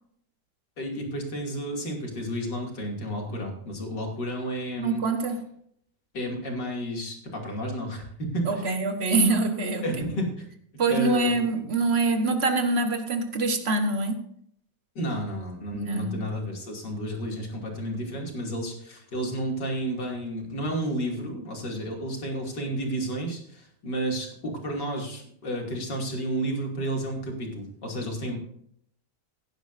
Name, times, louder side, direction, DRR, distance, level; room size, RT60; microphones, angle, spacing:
voice 1, 0.8-5.0 6.1-8.7 9.8-10.5 10.9-11.6 14.9-28.4, right 1 dB, 80° left, 3.3 m, -31 dB
voice 2, 4.8-5.4 8.5-9.9 10.8-14.2 15.7-16.3, right 3 dB, 40° right, 1.5 m, -25 dB
17.0 x 10.5 x 2.6 m
omnidirectional pair, 1.8 m